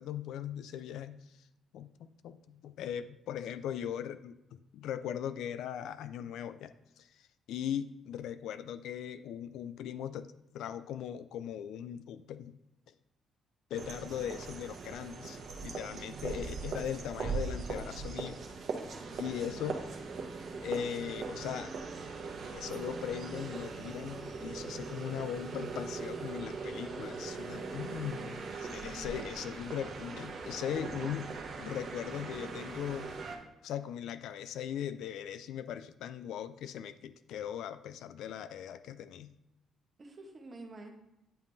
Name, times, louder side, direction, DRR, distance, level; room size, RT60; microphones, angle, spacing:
voice 1, 0.0-1.5 1.7-12.6 13.7-18.4 19.2-19.8 20.6-21.7 22.5-33.2 33.6-39.3, left 9 dB, 80° left, 13 dB, 0.3 m, -39 dB
sound 1, 13.7-33.4, right 4 dB, 50° right, 1.0 m, -40 dB
voice 2, 16.0-16.5 27.7-29.5 40.0-40.9, right 2 dB, 30° right, 3 dB, 1.0 m, -52 dB
9.0 x 5.2 x 2.7 m, 0.88 s
cardioid pair, 135°, 0 cm